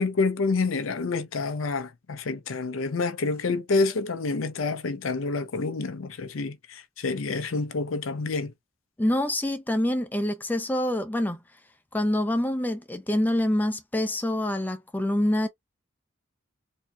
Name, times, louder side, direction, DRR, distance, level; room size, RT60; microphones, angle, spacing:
voice 1, 0.0-8.5, left 3 dB, 80° left, 0.6 m, -28 dB
voice 2, 9.0-11.4 11.9-15.5, left 1 dB, 10° left, 0.4 m, -26 dB
4.2 x 2.8 x 2.3 m
head